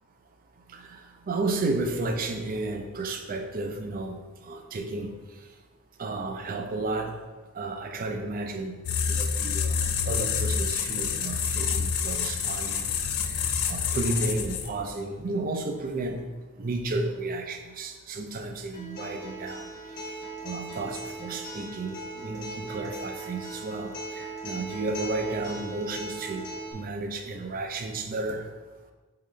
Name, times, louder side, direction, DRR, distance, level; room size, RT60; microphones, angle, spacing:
voice 1, 0.7-1.0 1.3-5.2 6.0-7.2 7.5-8.8 9.1-9.8 10.1-12.9 13.3-16.2 16.6-19.7 20.4-28.5, right 2 dB, 40° right, 5 dB, 0.4 m, -32 dB
sound 1, 8.9-14.9, left 6 dB, 70° left, 0.4 m, -28 dB
Acoustic guitar, 18.7-26.7, right 2 dB, 45° left, 1.2 m, -38 dB
4.2 x 3.8 x 3.2 m, 1.3 s
head